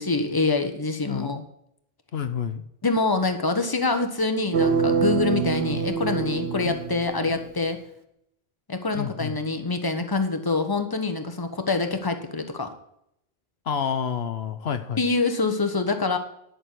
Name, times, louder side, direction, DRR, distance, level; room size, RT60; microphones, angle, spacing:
voice 1, 0.0-1.4 2.8-7.8 8.7-12.7 15.0-16.2, left 3 dB, 20° left, 7 dB, 1.2 m, -25 dB
voice 2, 1.1-1.4 2.1-2.6 6.6-6.8 8.9-9.3 13.7-15.0, left 7 dB, 75° left, 8 dB, 1.1 m, -29 dB
sound 1, 4.5-7.6, right 6 dB, 80° right, 1.3 m, -25 dB
11.0 x 6.6 x 7.6 m, 0.75 s
omnidirectional pair, 1.1 m